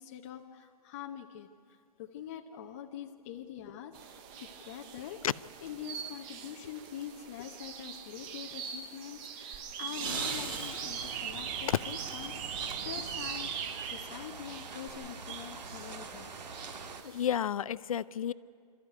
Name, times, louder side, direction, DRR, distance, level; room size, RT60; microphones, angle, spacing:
voice 1, 0.0-1.5 2.0-5.2 5.6-13.5 13.8-16.3, left 10 dB, 20° left, 2 dB, 0.7 m, -44 dB
sound 1, 3.9-17.3, right 7 dB, 10° right, 0.4 m, -42 dB
sound 2, 9.5-13.7 14.9-15.0, right 5 dB, 30° right, 4.0 m, -41 dB
sound 3, 10.9-17.0, right 4 dB, 85° right, 1.9 m, -46 dB
voice 2, 17.0-18.3, left 9 dB, 55° left, 17 dB, 0.6 m, -30 dB
26.5 x 13.5 x 9.3 m, 2.3 s
hypercardioid pair, 165°, 21 cm